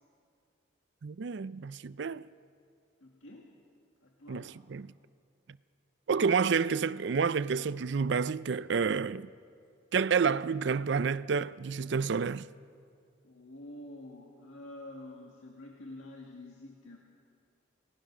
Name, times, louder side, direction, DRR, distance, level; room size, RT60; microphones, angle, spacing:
voice 1, 1.0-2.3 4.3-4.9 6.1-9.3 9.9-12.5, right 5 dB, 60° right, 0.4 m, -29 dB
voice 2, 3.0-3.5 4.0-4.5 13.2-17.0, left 1 dB, 75° left, 1.9 m, -48 dB
29.0 x 18.5 x 6.2 m
head